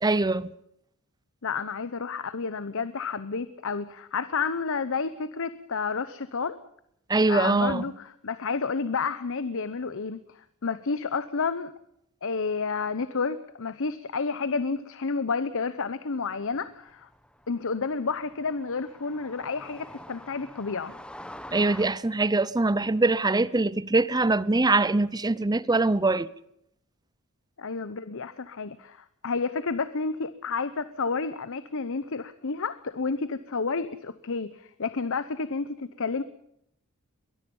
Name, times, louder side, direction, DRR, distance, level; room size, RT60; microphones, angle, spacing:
voice 1, 0.0-0.5 7.1-7.8 21.5-26.3, right 2 dB, 20° right, 0.7 m, -23 dB
voice 2, 1.4-6.6 7.3-11.7 12.2-17.1 17.5-21.0 27.6-36.2, left 4 dB, 65° left, 0.9 m, -30 dB
sound 1, 16.3-21.9, left 1 dB, 5° left, 1.3 m, -46 dB
23.0 x 20.5 x 5.5 m
head